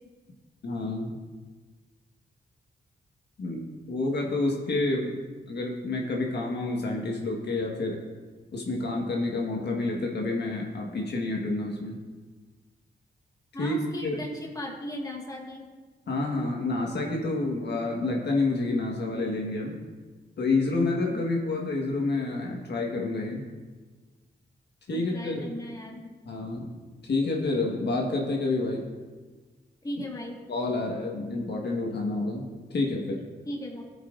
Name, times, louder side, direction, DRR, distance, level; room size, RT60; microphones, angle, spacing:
voice 1, 0.6-1.2 3.4-3.6 3.9-5.1 5.5-8.0 8.5-12.0 13.6-14.2 16.1-19.8 20.4-23.4 24.9-25.5 26.2-26.7 27.0-28.9 30.5-33.2, left 2 dB, 70° left, -1 dB, 1.3 m, -28 dB
voice 2, 13.5-15.7 21.1-21.2 24.9-26.1 29.8-30.4 33.4-33.9, left 1 dB, 20° left, -1 dB, 1.6 m, -37 dB
16.0 x 5.5 x 2.5 m, 1.4 s
cardioid pair, 85°, 18 cm